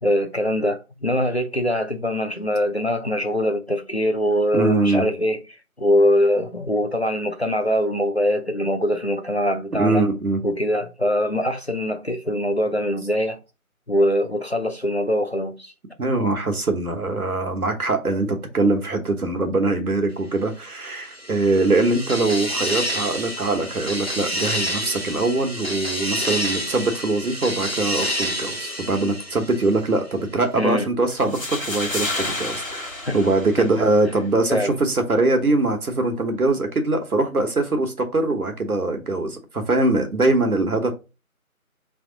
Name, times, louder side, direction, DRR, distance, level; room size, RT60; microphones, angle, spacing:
voice 1, 0.0-5.4 5.8-10.1 10.4-13.4 13.9-15.7 30.5-30.9 33.1-33.2 33.6-33.7 34.5-34.8, equal, 50° left, 0.5 m, -22 dB
voice 2, 4.5-5.0 9.7-10.4 16.0-40.9, right 2 dB, 85° right, 1.2 m, -22 dB
sound 1, 20.9-30.0, equal, 45° right, 0.5 m, -29 dB
sound 2, 31.1-34.1, left 2 dB, 65° left, 1.3 m, -30 dB
3.6 x 3.4 x 3.8 m
figure-of-eight pair, 175°, 43 cm